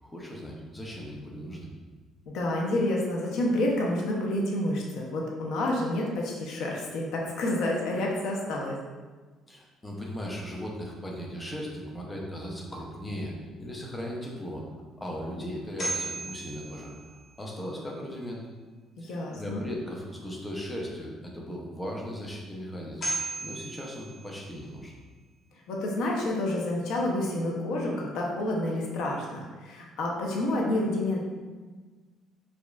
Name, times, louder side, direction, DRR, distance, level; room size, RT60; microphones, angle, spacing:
voice 1, 0.0-1.7 9.5-13.3 13.6-14.6 15.0-18.4 19.0-23.1 23.4-24.9, equal, 10° left, -2 dB, 0.5 m, -37 dB
voice 2, 2.3-8.8 19.0-19.6 25.7-31.2, left 1 dB, 75° left, -2 dB, 0.6 m, -29 dB
sound 1, 15.6-17.7 22.6-22.7 23.0-24.9, right 2 dB, 40° left, 0.8 m, -36 dB
4.9 x 2.3 x 2.3 m, 1.4 s
cardioid pair, 160°, 0 cm